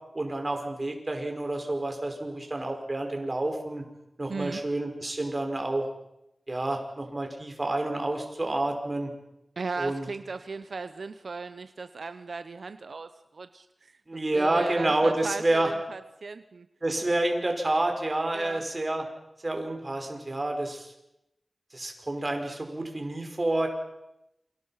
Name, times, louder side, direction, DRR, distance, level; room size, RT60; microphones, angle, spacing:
voice 1, 0.1-3.8 4.2-5.8 6.5-9.1 9.8-10.1 14.1-15.7 16.8-19.0 19.4-20.9 21.7-23.7, right 2 dB, 35° right, 3 dB, 5.2 m, -29 dB
voice 2, 4.3-4.6 9.6-14.0 14.3-16.7 18.3-18.6, right 4 dB, 85° right, 11 dB, 0.9 m, -37 dB
28.5 x 25.5 x 5.8 m, 0.85 s
wide cardioid pair, 85°, 0 cm